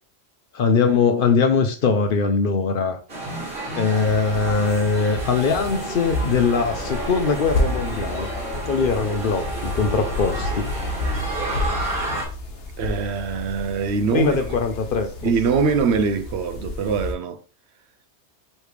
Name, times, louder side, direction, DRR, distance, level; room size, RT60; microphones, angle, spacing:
voice 1, 0.5-3.0 3.7-8.3 8.7-10.7 14.1-15.3, left 5 dB, 60° left, 0.7 m, -21 dB
sound 1, 3.1-12.2, right 2 dB, 55° right, 1.8 m, -31 dB
sound 2, 4.0-17.1, left 2 dB, 85° left, 1.2 m, -31 dB
voice 2, 12.8-14.4 15.2-17.4, right 5 dB, 75° right, 0.8 m, -23 dB
5.0 x 3.2 x 3.2 m
omnidirectional pair, 1.1 m